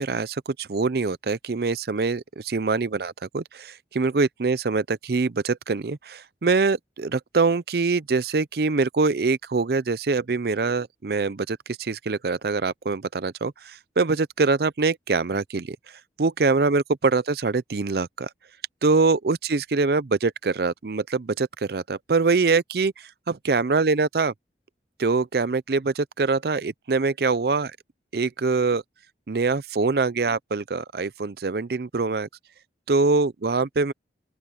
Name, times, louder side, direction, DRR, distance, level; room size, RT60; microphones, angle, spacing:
voice 1, 0.0-15.8 16.2-18.3 18.8-24.3 25.0-27.7 28.1-28.8 29.3-32.3 32.9-33.9, right 4 dB, 60° right, 0.5 m, -24 dB
open air
head